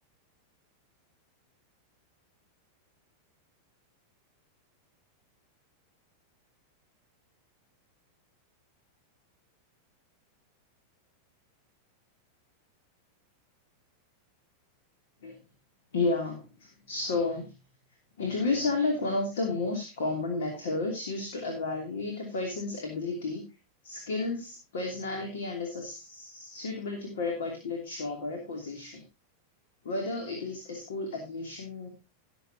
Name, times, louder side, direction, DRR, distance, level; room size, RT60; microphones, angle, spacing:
voice 1, 15.9-17.5 18.2-23.4 23.8-29.0 29.8-31.9, left 3 dB, 60° left, 3 dB, 3.0 m, -32 dB
19.0 x 7.3 x 2.9 m, 0.27 s
figure-of-eight pair, 90°, 0 cm